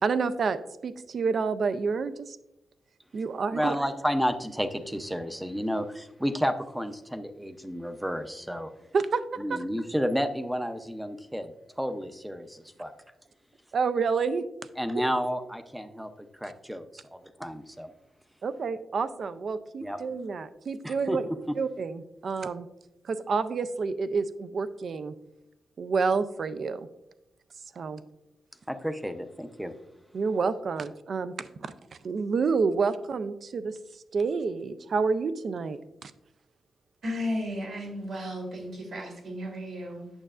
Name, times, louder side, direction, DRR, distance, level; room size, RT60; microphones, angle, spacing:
voice 1, 0.0-2.4 3.1-3.8 8.9-9.2 9.5-9.6 13.7-14.4 18.4-21.3 21.6-22.7 23.0-25.1 25.8-26.9 27.8-28.0 30.1-31.7 32.0-33.8 34.1-36.1, right 5 dB, 55° right, 13 dB, 0.4 m, -29 dB
voice 2, 3.5-8.7 9.4-12.9 14.8-16.1 16.4-17.9 19.8-20.0 20.8-21.2 28.7-29.7, equal, 5° right, 9 dB, 0.6 m, -31 dB
voice 3, 37.0-40.1, left 1 dB, 75° right, -1 dB, 2.7 m, -34 dB
8.8 x 6.7 x 2.4 m, 0.89 s
cardioid pair, 100°, 0 cm